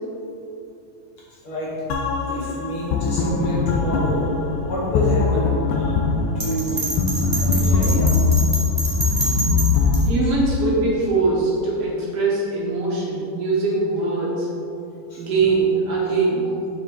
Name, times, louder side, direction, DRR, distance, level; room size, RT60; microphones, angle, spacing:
voice 1, 1.3-1.7 2.3-4.2 4.6-6.1 6.3-7.0 7.3-8.1 9.2-9.4 10.0-10.3 15.1-15.2 16.0-16.1, equal, 60° left, -6 dB, 1.4 m, -28 dB
sound 1, 1.9-10.0, left 4 dB, 80° left, 1.9 m, -21 dB
Bell, 6.4-10.0, right 2 dB, 35° right, 0.7 m, -26 dB
voice 2, 10.0-14.5 15.2-16.5, right 3 dB, 65° right, -5 dB, 1.5 m, -22 dB
6.9 x 6.4 x 4.6 m, 2.6 s
omnidirectional pair, 4.2 m